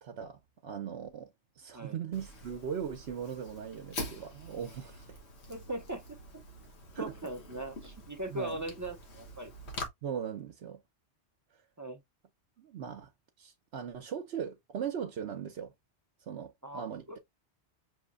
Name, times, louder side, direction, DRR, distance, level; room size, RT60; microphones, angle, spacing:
voice 1, 0.0-5.2 6.9-7.1 8.3-8.6 10.0-10.8 12.6-13.1 13.4-15.7 16.3-17.1, right 8 dB, 70° right, 1.0 m, -39 dB
Fire, 2.1-9.9, left 2 dB, 70° left, 1.4 m, -45 dB
voice 2, 5.5-6.4 7.0-9.5 11.8-12.0 16.6-17.2, right 1 dB, 30° right, 0.3 m, -40 dB
6.2 x 2.9 x 2.4 m
omnidirectional pair, 1.1 m